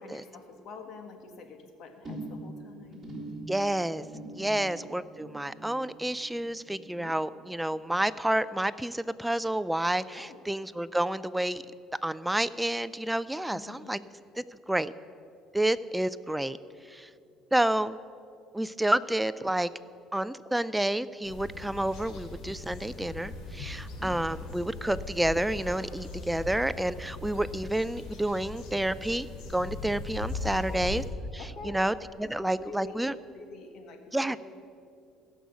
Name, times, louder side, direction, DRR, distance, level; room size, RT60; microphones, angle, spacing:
voice 1, 0.0-3.1 4.4-4.7 7.0-7.2 10.0-10.4 13.5-14.0 24.0-24.2 30.4-30.8 31.4-31.8 32.2-32.9 33.2-34.4, left 4 dB, 55° left, 5 dB, 1.6 m, -46 dB
sound 1, 2.0-8.6 8.9-9.3 9.6-9.7, right 2 dB, 20° right, 3.4 m, -44 dB
voice 2, 3.5-4.0 4.4-11.6 12.0-14.0 14.4-14.9 15.5-16.6 16.9-17.1 17.5-18.0 18.5-19.7 20.1-31.0 31.6-33.1 34.1-34.4, right 1 dB, 5° right, 15 dB, 0.3 m, -29 dB
sound 2, 21.2-31.1, left 3 dB, 75° left, 2.7 m, -39 dB
16.0 x 6.3 x 8.2 m, 2.4 s
cardioid pair, 130°, 0 cm